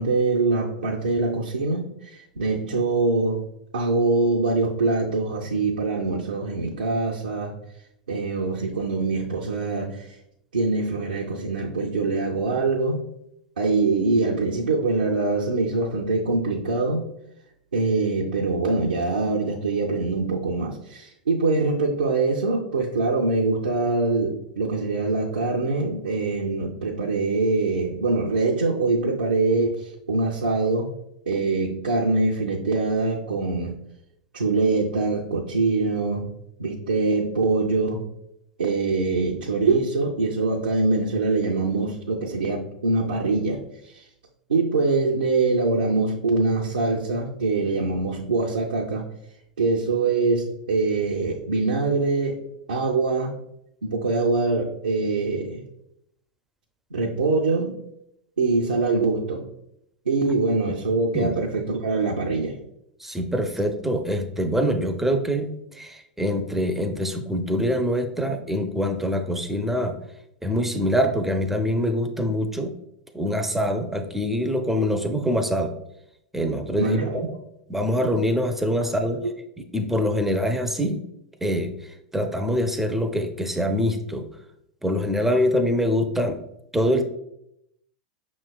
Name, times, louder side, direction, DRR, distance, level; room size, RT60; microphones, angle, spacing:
voice 1, 0.0-3.5 3.7-7.5 8.1-10.1 10.5-13.0 13.6-17.0 17.7-30.9 31.3-33.7 34.3-36.3 36.6-38.1 38.6-43.6 43.9-44.0 44.5-49.1 49.6-52.4 52.7-53.3 53.8-55.6 56.9-57.8 58.4-59.5 60.1-62.6 76.8-77.2, right 3 dB, 80° right, -3 dB, 0.5 m, -23 dB
voice 2, 63.0-70.0 70.4-72.7 73.1-75.7 76.3-77.0 77.7-79.2 79.7-81.0 81.4-84.3 84.8-86.4 86.7-87.1, equal, 5° right, 6 dB, 0.4 m, -24 dB
5.6 x 3.1 x 2.3 m, 0.78 s
figure-of-eight pair, 90°, 5 cm